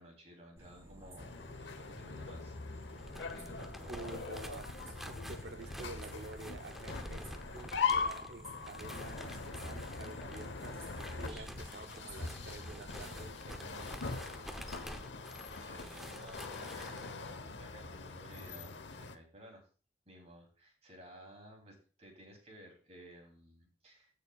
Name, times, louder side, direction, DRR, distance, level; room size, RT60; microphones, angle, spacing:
voice 1, 0.0-3.0 3.3-4.2 5.3-5.8 11.1-11.6 15.5-19.6 20.1-24.1, equal, 35° right, 3.0 m, -56 dB
sound 1, 0.6-13.3, equal, 15° right, 4.2 m, -54 dB
sound 2, 1.2-19.2, left 5 dB, 90° left, 0.9 m, -41 dB
sound 3, 2.9-17.1, equal, ahead, 0.7 m, -49 dB
voice 2, 3.9-10.8 11.2-14.6, right 3 dB, 70° right, 0.7 m, -50 dB
15.5 x 6.6 x 2.3 m
head